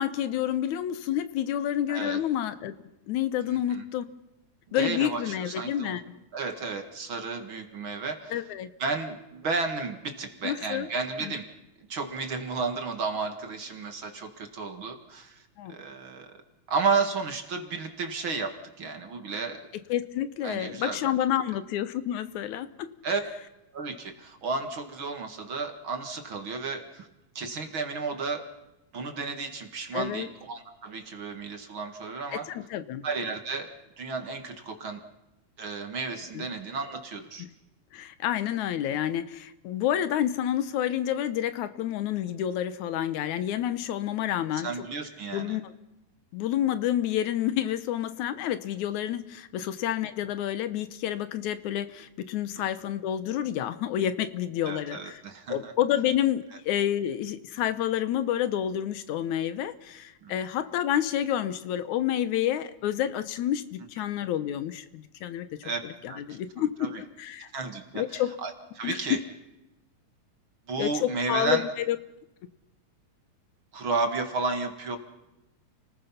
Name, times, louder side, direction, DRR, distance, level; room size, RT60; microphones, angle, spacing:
voice 1, 0.0-2.7 3.1-4.1 4.7-6.0 8.3-8.7 10.4-10.9 11.2-11.3 15.6-15.7 19.9-22.9 29.9-30.3 32.3-33.1 36.3-36.5 37.4-37.5 37.9-44.7 45.3-45.7 46.3-55.2 55.5-65.5 66.0-67.5 68.0-68.4 68.8-69.0 70.8-72.0, left 11 dB, 80° left, 13 dB, 2.4 m, -29 dB
voice 2, 1.9-2.2 3.5-3.8 4.8-6.0 6.3-8.4 8.8-11.5 11.9-15.4 15.7-16.4 16.7-19.7 20.4-21.1 23.0-23.2 23.7-27.1 27.4-28.4 28.9-32.5 33.0-35.0 35.6-37.5 44.5-45.6 52.5-52.6 54.6-55.7 60.2-60.4 64.0-64.1 65.6-65.8 66.1-67.0 67.4-69.2 70.7-71.7 73.7-75.0, right 4 dB, 45° right, 5 dB, 2.4 m, -33 dB
29.5 x 19.5 x 5.8 m, 0.93 s
omnidirectional pair, 3.4 m